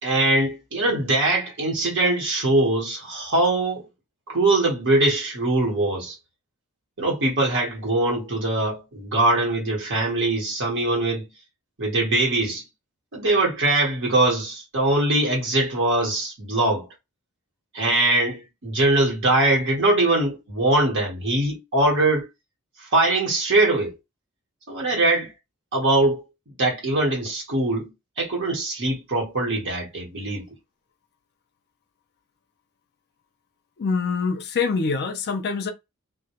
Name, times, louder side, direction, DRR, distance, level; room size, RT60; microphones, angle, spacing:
voice 1, 0.0-3.9 4.3-6.1 7.0-11.3 11.8-12.6 13.1-16.9 17.7-22.3 22.9-23.9 24.7-25.3 25.7-27.9 28.2-30.4, right 2 dB, 55° right, 1.1 m, -22 dB
voice 2, 33.8-35.7, left 4 dB, 50° left, 0.5 m, -25 dB
2.2 x 2.1 x 2.9 m
head